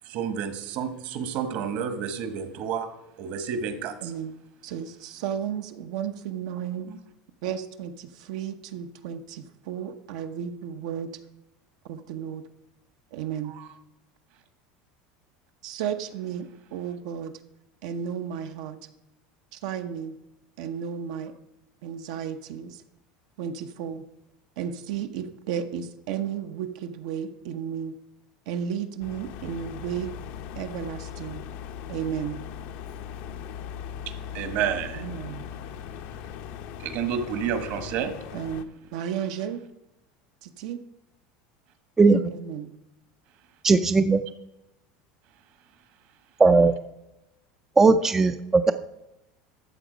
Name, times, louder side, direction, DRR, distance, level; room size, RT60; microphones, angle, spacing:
voice 1, 0.0-2.9 3.2-4.1 6.9-7.0 13.5-13.7 34.1-35.0 36.8-38.1, right 7 dB, 55° right, 9 dB, 1.4 m, -30 dB
voice 2, 4.0-4.4 4.6-6.9 7.4-11.1 11.9-12.5 13.1-13.5 15.6-17.4 17.8-18.8 19.5-20.2 20.6-21.3 21.8-22.8 23.4-24.1 24.6-28.0 28.5-30.1 30.6-31.4 31.9-32.4 35.0-35.4 38.3-39.6 40.4-40.8 42.3-42.7, right 8 dB, 75° right, 6 dB, 0.9 m, -33 dB
sound 1, 29.0-38.6, left 8 dB, 60° left, 0.7 m, -39 dB
voice 3, 42.0-42.3 43.6-44.2 46.4-46.7 47.8-48.7, right 3 dB, 10° right, 9 dB, 0.4 m, -18 dB
12.5 x 7.5 x 5.1 m, 0.91 s
supercardioid pair, 150°, 3 cm